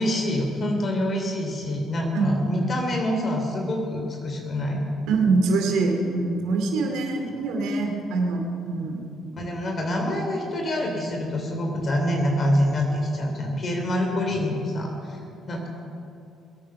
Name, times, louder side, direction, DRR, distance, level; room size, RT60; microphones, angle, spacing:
voice 1, 0.0-4.8 9.4-15.7, left 1 dB, 45° left, 1 dB, 3.1 m, -26 dB
voice 2, 5.1-9.1, right 3 dB, 75° right, 3 dB, 2.5 m, -24 dB
21.5 x 9.2 x 5.8 m, 2.6 s
hypercardioid pair, 55°, 0 cm